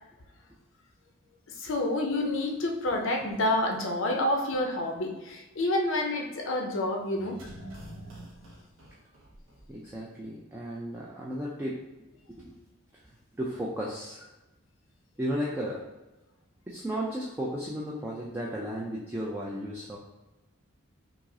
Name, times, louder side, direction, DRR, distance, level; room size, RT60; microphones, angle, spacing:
voice 1, 1.5-7.4, left 1 dB, 65° left, 2 dB, 0.5 m, -28 dB
sound 1, 7.1-9.9 10.2-10.3, right 1 dB, 70° right, 0.6 m, -46 dB
voice 2, 9.7-11.8 12.3-12.6 12.9-13.0 13.3-14.3 15.2-15.8 16.7-20.0, equal, 10° right, -5 dB, 0.3 m, -34 dB
4.7 x 2.0 x 2.6 m, 1.0 s
head